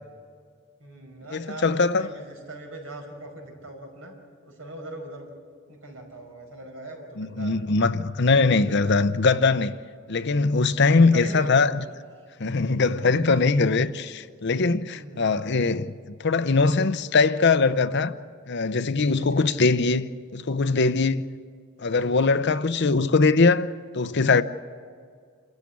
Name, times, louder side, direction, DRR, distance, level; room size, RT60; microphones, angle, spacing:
voice 1, 0.8-4.1 4.5-5.3 5.7-7.8 8.4-9.1 10.8-11.6 12.5-12.7 13.9-14.0 14.9-15.3 19.1-19.5, right 1 dB, 75° right, 5.2 m, -41 dB
voice 2, 1.3-2.1 7.2-9.7 10.1-11.7 12.4-18.1 18.5-21.2 21.8-23.7 23.9-24.4, left 4 dB, 55° left, 0.7 m, -21 dB
27.5 x 14.5 x 8.5 m
head